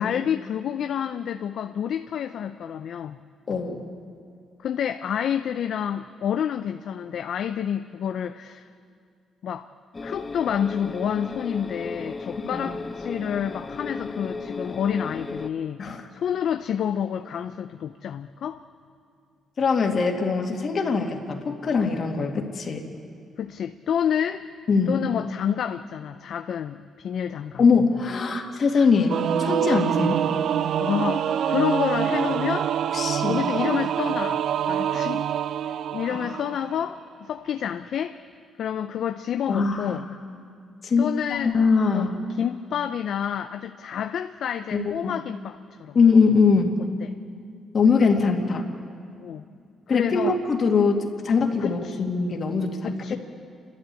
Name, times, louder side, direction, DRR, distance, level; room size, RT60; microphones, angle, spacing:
voice 1, 0.0-3.2 4.6-8.7 9.4-9.7 10.0-15.8 16.1-18.6 23.4-24.5 24.9-27.6 29.9-30.1 30.8-32.7 33.2-35.3 35.7-38.2 38.6-40.0 41.0-41.5 41.9-46.0 49.2-49.4 49.9-50.4 51.6-52.0 52.8-53.1, left 9 dB, 65° left, 9 dB, 0.5 m, -29 dB
voice 2, 3.5-3.8 12.5-12.7 15.8-16.0 19.6-22.9 24.7-25.0 27.6-30.1 32.9-33.5 36.1-36.2 39.5-40.0 40.8-42.2 44.7-45.1 45.9-46.7 47.7-48.7 49.9-53.1, left 4 dB, 50° left, 2 dB, 2.4 m, -22 dB
sound 1, 9.9-15.5, left 3 dB, 30° left, 0.8 m, -35 dB
Singing / Musical instrument, 29.1-36.9, right 9 dB, 70° right, 0.5 m, -25 dB
29.0 x 13.0 x 8.4 m, 2.3 s
cardioid pair, 90°, 0 cm